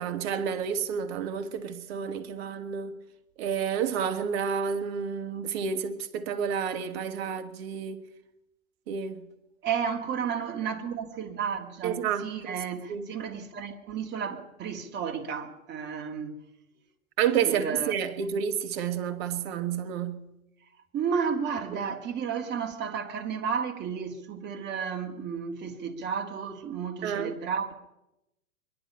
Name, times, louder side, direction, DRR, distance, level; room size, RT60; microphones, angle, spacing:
voice 1, 0.0-3.0 3.4-8.0 8.9-9.3 11.8-12.5 12.9-13.1 17.2-20.3 21.7-21.8 27.0-27.3, right 7 dB, 45° right, 1.5 m, -30 dB
voice 2, 9.6-16.4 17.5-17.9 20.9-27.7, right 6 dB, 25° right, 2.0 m, -32 dB
23.5 x 11.0 x 5.6 m
figure-of-eight pair, 105°, 42 cm